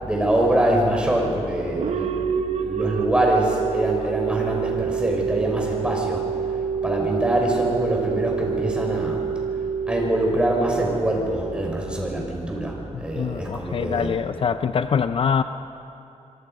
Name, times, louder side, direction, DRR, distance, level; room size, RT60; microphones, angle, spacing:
voice 1, 0.0-6.2 6.8-9.2 9.9-14.1, right 1 dB, 10° right, -1 dB, 4.9 m, -24 dB
sound 1, 1.8-12.4, right 7 dB, 65° right, 0.9 m, -27 dB
voice 2, 12.9-15.4, left 7 dB, 50° left, 10 dB, 0.5 m, -24 dB
25.5 x 24.5 x 5.4 m, 2.7 s
wide cardioid pair, 135°, 12 cm